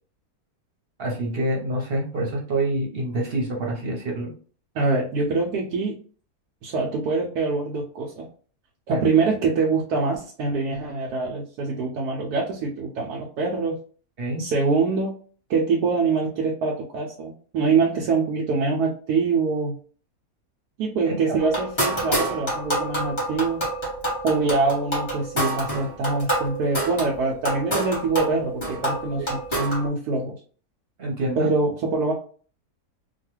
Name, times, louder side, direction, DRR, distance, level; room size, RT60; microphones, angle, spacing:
voice 1, 1.0-4.3 8.9-9.0 14.2-14.5 21.1-21.4 29.2-29.3 31.0-31.5, right 1 dB, 45° right, -1 dB, 0.9 m, -27 dB
voice 2, 4.7-6.0 6.6-8.3 8.9-13.8 14.4-15.1 15.5-19.8 20.8-23.6 24.2-30.4 31.4-32.1, right 4 dB, 90° right, -1 dB, 1.1 m, -24 dB
sound 1, 21.4-29.9, right 1 dB, 20° left, 1.0 m, -28 dB
3.0 x 2.3 x 3.0 m, 0.42 s
omnidirectional pair, 1.6 m